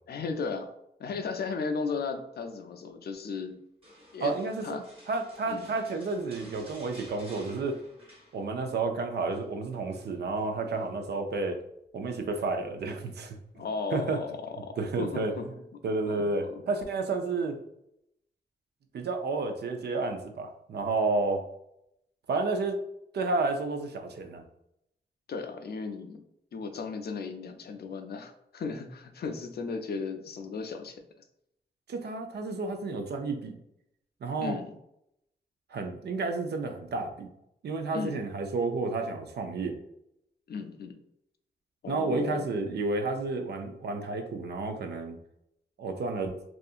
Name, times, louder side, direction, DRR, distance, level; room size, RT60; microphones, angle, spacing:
voice 1, 0.1-0.7 1.0-3.6 4.1-4.3 4.6-4.8 5.5-5.7 13.6-15.5 16.0-16.6 25.3-26.2 26.5-31.0 34.4-34.8 37.9-38.2 40.5-41.0 41.8-42.5, left 4 dB, 60° left, 6 dB, 0.4 m, -35 dB
sound 1, 3.8-8.8 9.1-9.5 9.9-10.9 12.1-12.5 13.0-13.2, equal, 30° right, 1.0 m, -54 dB
voice 2, 4.2-7.8 8.3-11.6 11.9-13.4 13.9-14.2 14.8-15.3 15.8-17.6 18.9-21.4 22.3-22.8 23.1-24.4 31.9-33.6 34.2-34.6 35.7-37.3 37.6-39.8 41.9-45.2 45.8-46.3, right 3 dB, 65° right, 5 dB, 0.4 m, -31 dB
2.7 x 2.4 x 2.4 m, 0.79 s
cardioid pair, 85°, 18 cm